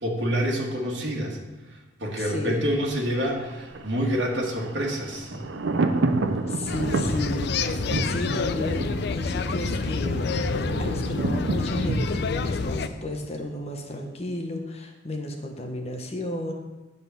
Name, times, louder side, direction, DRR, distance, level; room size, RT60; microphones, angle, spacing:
voice 1, 0.0-1.4 2.0-5.5, equal, 65° right, -2 dB, 1.6 m, -27 dB
voice 2, 2.2-2.6 6.5-16.5, left 1 dB, 35° left, 3 dB, 1.0 m, -33 dB
Thunder, 2.7-13.6 13.9-14.0, right 2 dB, 80° right, 0.6 m, -30 dB
sound 1, 6.7-12.9, left 4 dB, 60° left, 0.4 m, -28 dB
9.7 x 4.0 x 6.9 m, 1.1 s
head